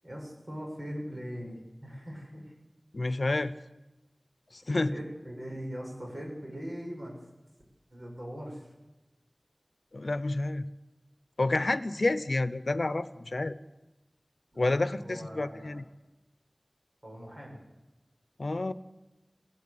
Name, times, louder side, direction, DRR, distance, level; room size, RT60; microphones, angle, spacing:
voice 1, 0.0-2.5 4.7-7.2 7.9-8.7 14.5-14.7 15.0-15.8 17.0-17.6, equal, 55° right, 0 dB, 7.2 m, -41 dB
voice 2, 2.9-3.6 4.5-4.9 9.9-10.7 11.4-13.5 14.6-15.8 18.4-18.7, left 2 dB, 70° left, 15 dB, 0.8 m, -29 dB
22.5 x 16.5 x 8.6 m, 1.1 s
wide cardioid pair, 55°, 0 cm